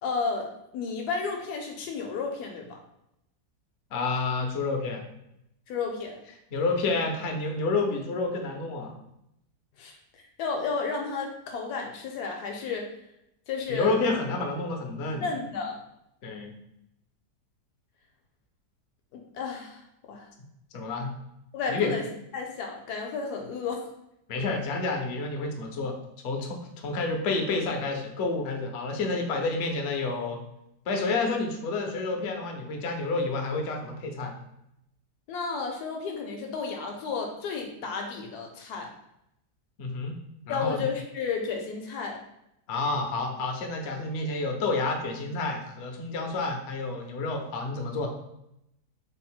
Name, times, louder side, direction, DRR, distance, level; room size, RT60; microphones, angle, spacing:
voice 1, 0.0-2.8 5.7-6.2 9.8-12.9 13.5-14.0 15.2-15.8 19.1-19.8 20.1-20.3 21.5-22.0 22.3-23.8 35.3-38.9 40.5-42.2, left 5 dB, 75° left, 2 dB, 1.1 m, -32 dB
voice 2, 3.9-5.0 6.5-8.9 13.7-15.3 16.2-16.5 20.7-21.1 21.7-21.9 24.3-26.0 26.2-30.4 30.9-34.3 39.8-40.2 40.5-40.8 42.7-48.1, left 3 dB, 60° left, 2 dB, 0.7 m, -29 dB
3.6 x 2.0 x 4.3 m, 0.81 s
omnidirectional pair, 1.8 m